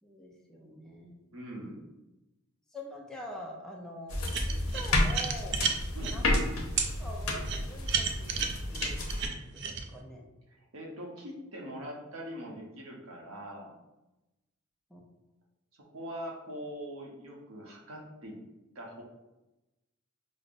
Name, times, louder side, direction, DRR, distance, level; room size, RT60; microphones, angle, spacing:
voice 1, 0.0-1.3 2.7-4.2 4.5-5.7 6.0-6.4 6.8-9.0 9.4-10.2 14.9-15.0, equal, 5° left, -2 dB, 0.4 m, -45 dB
voice 2, 1.3-1.9 5.9-6.3 10.5-13.8 15.9-18.4 18.7-19.0, equal, 75° right, -1 dB, 0.8 m, -42 dB
sound 1, 4.1-9.3, left 1 dB, 75° left, 0.7 m, -31 dB
sound 2, 4.3-6.2 6.8-6.9 7.4-9.8, right 7 dB, 55° right, 0.4 m, -32 dB
5.0 x 2.0 x 2.5 m, 0.99 s
head